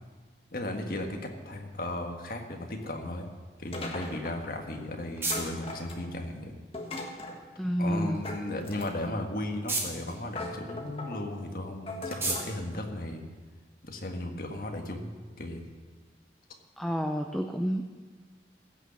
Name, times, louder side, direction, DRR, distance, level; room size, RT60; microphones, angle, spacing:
voice 1, 0.5-1.2 1.4-3.3 3.6-6.5 7.8-13.2 13.8-15.6, left 1 dB, 55° left, 3 dB, 1.6 m, -36 dB
sound 1, 3.7-4.5 5.3-6.2 6.7-7.4 8.2-9.2 9.8-10.0 10.3-11.2 11.9-12.5, left 2 dB, 30° left, 1.5 m, -39 dB
sound 2, 4.4-13.8, right 2 dB, 15° right, 2.0 m, -40 dB
voice 2, 7.6-8.2 16.8-17.8, equal, ahead, 4 dB, 0.5 m, -29 dB
16.0 x 6.6 x 7.3 m, 1.4 s
head